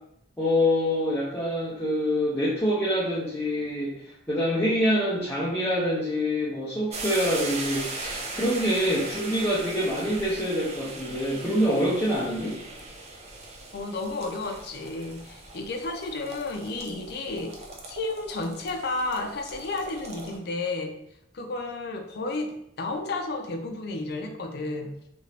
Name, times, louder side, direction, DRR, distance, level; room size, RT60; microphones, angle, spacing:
voice 1, 0.4-12.6, equal, 15° left, -7 dB, 0.6 m, -26 dB
sound 1, 6.9-20.4, right 2 dB, 35° right, 0.5 m, -39 dB
voice 2, 13.7-17.6 17.9-20.9 21.3-24.9, left 2 dB, 60° left, 4 dB, 0.4 m, -32 dB
2.8 x 2.6 x 3.2 m, 0.77 s
head